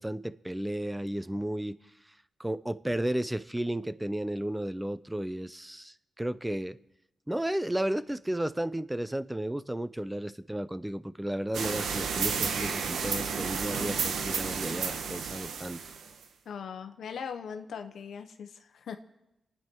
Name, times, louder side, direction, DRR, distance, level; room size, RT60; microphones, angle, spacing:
voice 1, 0.0-1.8 2.4-6.8 7.3-15.8, right 1 dB, 10° right, 0.6 m, -33 dB
sound 1, 11.5-16.2, right 6 dB, 85° right, 1.2 m, -32 dB
voice 2, 16.4-19.0, left 7 dB, 80° left, 1.1 m, -40 dB
27.5 x 9.6 x 4.6 m
cardioid pair, 85°, 0 cm